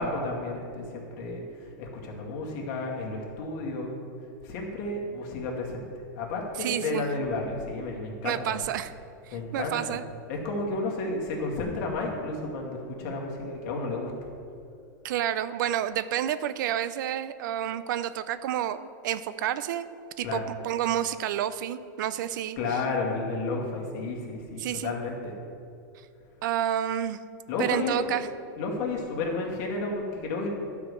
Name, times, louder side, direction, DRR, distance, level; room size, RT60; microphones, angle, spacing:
voice 1, 0.0-1.4 1.8-3.9 4.4-5.8 6.2-8.6 9.3-10.0 10.3-14.1 20.2-20.5 22.6-25.3 27.5-28.2 28.6-30.5, left 3 dB, 50° left, -1 dB, 2.2 m, -32 dB
voice 2, 6.6-7.0 8.2-8.9 9.3-10.0 15.0-19.9 20.2-22.8 24.6-24.9 26.4-27.2 27.6-28.3, right 11 dB, 70° right, 14 dB, 0.5 m, -29 dB
11.5 x 5.0 x 6.9 m, 2.5 s
supercardioid pair, 155°, 11 cm